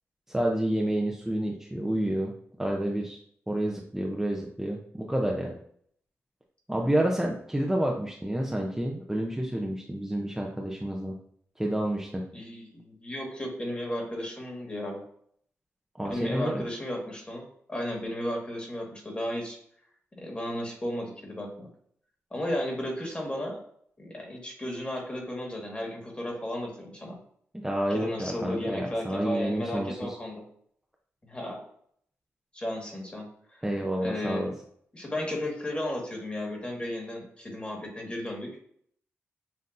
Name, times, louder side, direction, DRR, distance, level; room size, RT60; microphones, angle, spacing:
voice 1, 0.3-2.3 2.6-3.2 3.5-5.6 6.7-11.1 11.6-12.2 16.0-16.6 27.6-30.1 33.6-34.5, right 1 dB, 10° right, -1 dB, 0.7 m, -29 dB
voice 2, 12.3-15.0 16.1-17.4 17.7-19.6 20.1-21.7 22.3-23.6 24.0-27.2 27.9-30.4 31.2-31.6 32.5-33.6 34.0-34.5 34.9-38.5, left 1 dB, 25° left, 0 dB, 1.8 m, -34 dB
7.4 x 2.7 x 2.6 m, 0.64 s
cardioid pair, 75°, 5 cm